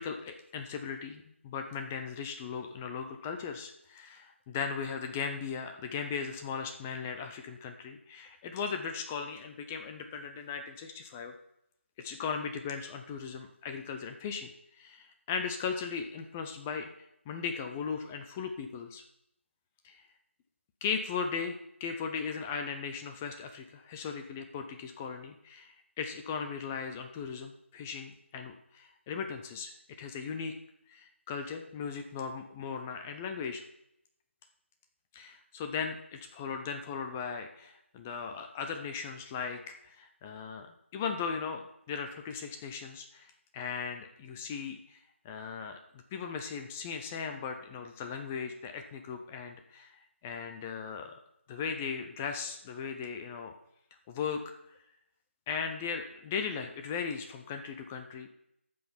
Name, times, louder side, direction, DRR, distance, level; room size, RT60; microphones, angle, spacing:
voice 1, 0.0-11.3 12.0-14.5 14.8-16.9 17.3-19.0 19.8-20.0 20.8-29.7 30.0-30.5 30.9-33.6 35.1-40.7 40.9-45.0 45.2-45.8 46.1-51.1 51.5-53.5 54.1-54.4 55.5-58.3, left 6 dB, 10° left, 5 dB, 0.4 m, -37 dB
12.0 x 5.9 x 7.0 m, 0.79 s
figure-of-eight pair, 165°, 7 cm